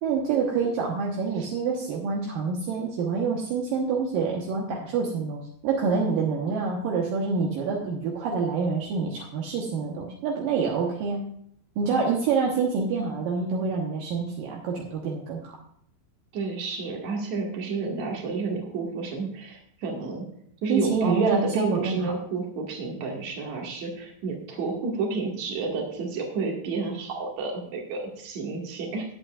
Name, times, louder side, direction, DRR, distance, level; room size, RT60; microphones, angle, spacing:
voice 1, 0.0-11.2 11.8-15.6 20.7-22.1, right 5 dB, 70° right, -2 dB, 2.1 m, -27 dB
voice 2, 16.3-20.3 20.6-29.0, right 4 dB, 50° right, 0 dB, 2.4 m, -30 dB
19.0 x 8.3 x 2.5 m, 0.69 s
omnidirectional pair, 5.7 m